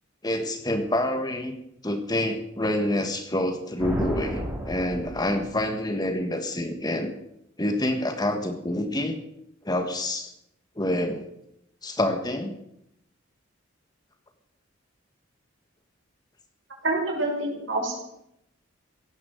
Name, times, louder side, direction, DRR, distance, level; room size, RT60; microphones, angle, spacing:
voice 1, 0.2-1.5 1.8-7.1 7.6-9.1 9.6-10.3 10.8-11.2 11.8-12.6, left 1 dB, 20° left, 6 dB, 1.6 m, -27 dB
sound 1, 3.8-5.9, right 1 dB, 15° right, 3.7 m, -33 dB
voice 2, 16.8-18.0, right 2 dB, 70° right, 1 dB, 5.8 m, -27 dB
16.5 x 10.5 x 7.9 m, 0.78 s
head